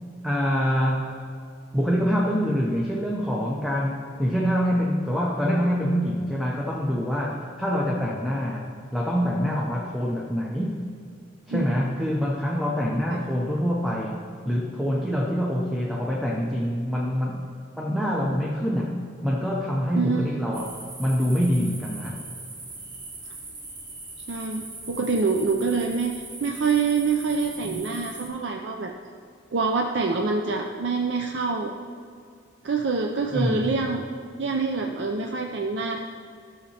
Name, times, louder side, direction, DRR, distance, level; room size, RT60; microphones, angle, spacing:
voice 1, 0.2-1.2 1.7-10.8 11.5-17.5 17.8-19.0 19.2-20.7 21.0-22.2 33.3-33.7, equal, ahead, -3 dB, 0.6 m, -25 dB
voice 2, 20.0-20.4 24.3-28.9 29.5-31.7 32.6-34.1 34.4-36.0, right 4 dB, 65° right, 2 dB, 0.4 m, -26 dB
sound 1, 20.5-28.3, right 2 dB, 45° right, 1.5 m, -40 dB
12.5 x 6.4 x 2.8 m, 2.3 s
head